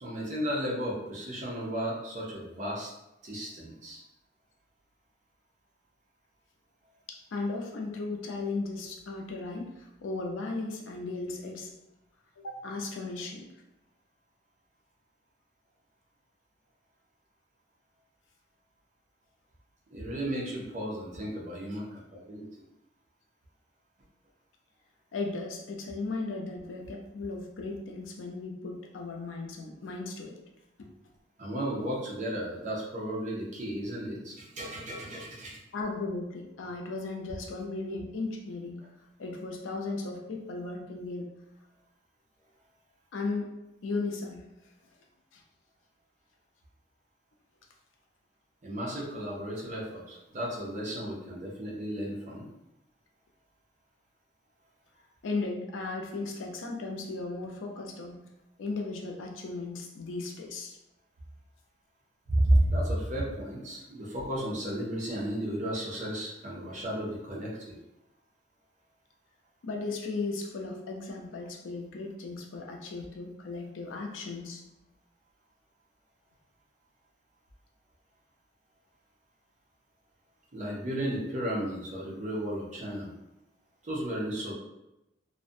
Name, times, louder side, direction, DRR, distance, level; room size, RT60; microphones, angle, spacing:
voice 1, 0.0-2.9 3.2-4.0 19.9-22.5 31.4-35.6 48.6-52.4 62.3-67.8 80.5-83.1 83.8-84.5, right 1 dB, 40° right, -4 dB, 0.5 m, -33 dB
voice 2, 7.1-11.7 12.4-13.5 25.1-30.3 30.8-30.9 35.7-38.8 39.2-41.3 43.1-43.5 43.8-44.5 45.3-45.4 55.2-58.2 58.6-60.8 69.6-74.6, left 3 dB, 85° left, 1 dB, 0.4 m, -36 dB
2.4 x 2.1 x 2.6 m, 0.93 s
head